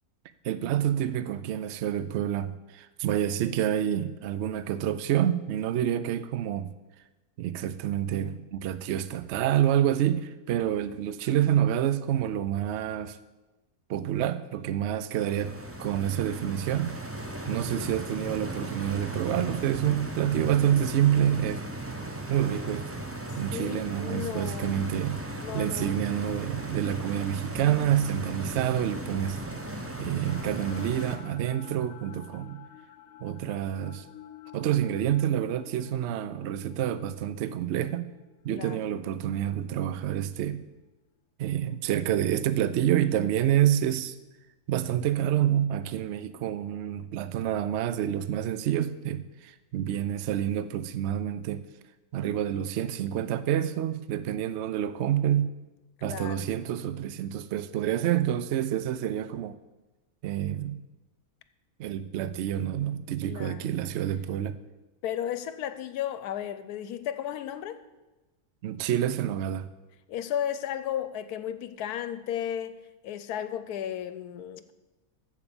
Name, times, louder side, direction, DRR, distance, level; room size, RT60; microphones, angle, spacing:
voice 1, 0.4-6.7 7.4-13.2 13.9-15.5 15.8-17.0 17.5-21.6 22.3-22.9 23.4-29.4 30.0-32.6 33.2-34.0 34.5-38.1 38.4-40.6 41.4-44.1 44.7-51.6 52.1-55.5 56.0-59.6 60.2-60.8 61.8-64.5 68.6-69.7, right 11 dB, 65° right, 0.7 m, -28 dB
Stream, 15.1-31.2, right 2 dB, 15° right, 0.6 m, -37 dB
voice 2, 17.7-18.0 23.5-24.8 25.4-26.0 38.5-38.8 56.0-56.5 63.3-63.7 65.0-67.8 70.1-74.7, left 10 dB, 85° left, 1.1 m, -34 dB
sound 1, 29.7-39.9, left 10 dB, 70° left, 1.0 m, -51 dB
14.0 x 4.9 x 6.9 m
omnidirectional pair, 1.6 m